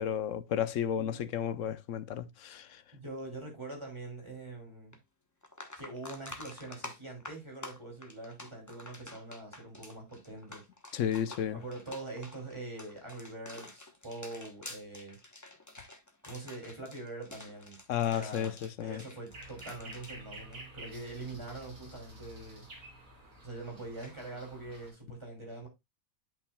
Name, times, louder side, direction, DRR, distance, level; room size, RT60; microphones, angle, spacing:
voice 1, 0.0-2.8 10.9-11.6 17.9-18.5 18.8-19.0, left 9 dB, 65° left, 0.9 m, -32 dB
voice 2, 2.9-4.9 5.7-10.7 11.5-15.2 16.2-17.8 18.1-22.7 23.4-25.7, right 2 dB, 20° right, 2.8 m, -44 dB
sound 1, 4.9-5.0 5.4-21.1 21.3-21.6 24.0-24.1, left 2 dB, 15° left, 0.9 m, -49 dB
sound 2, 19.3-24.9, right 2 dB, 65° right, 3.4 m, -50 dB
10.5 x 5.8 x 2.2 m
omnidirectional pair, 1.5 m